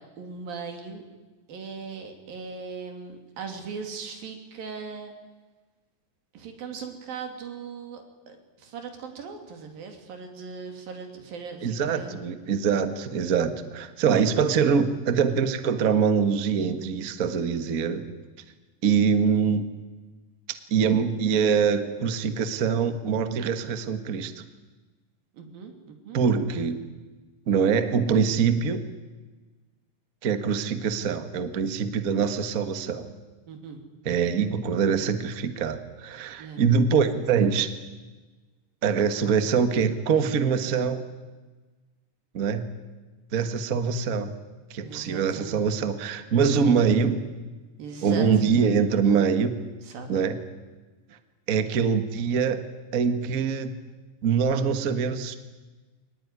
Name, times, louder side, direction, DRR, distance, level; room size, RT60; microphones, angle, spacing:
voice 1, 0.2-1.0 1.5-5.1 6.3-12.2 25.3-26.2 33.5-33.8 36.4-36.7 44.8-45.7 47.8-48.3 49.8-50.2, right 5 dB, 90° right, 5 dB, 4.6 m, -39 dB
voice 2, 11.6-18.1 18.8-19.7 20.7-24.3 26.1-26.8 27.5-28.8 30.2-33.1 34.0-37.7 38.8-41.0 42.3-42.7 43.3-44.3 44.7-47.2 48.0-49.6 50.1-50.4 51.5-52.7 52.9-53.7 54.2-55.3, right 6 dB, 70° right, 9 dB, 0.8 m, -24 dB
22.5 x 20.0 x 9.8 m, 1.3 s
omnidirectional pair, 4.0 m